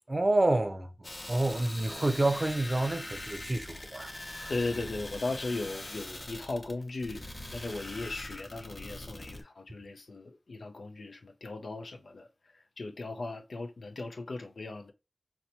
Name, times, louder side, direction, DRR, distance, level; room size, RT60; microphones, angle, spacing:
voice 1, 0.1-4.1 4.4-4.5, right 2 dB, 40° right, 0.5 m, -28 dB
sound 1, 1.0-9.4, left 1 dB, 55° left, 0.8 m, -42 dB
voice 2, 4.5-7.2 7.5-12.3 12.8-14.9, left 3 dB, 85° left, 0.5 m, -37 dB
4.1 x 2.1 x 2.8 m
cardioid pair, 40°, 0 cm